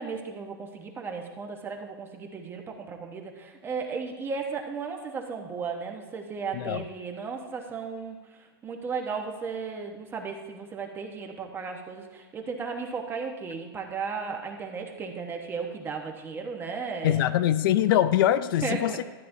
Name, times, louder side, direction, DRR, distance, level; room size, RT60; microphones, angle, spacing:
voice 1, 0.0-8.2 8.6-17.2 18.6-19.0, right 5 dB, 15° right, 3 dB, 1.0 m, -35 dB
voice 2, 6.5-6.8 17.0-19.0, left 11 dB, 60° left, 13 dB, 0.4 m, -23 dB
12.5 x 9.3 x 2.6 m, 1.4 s
supercardioid pair, 150°, 13 cm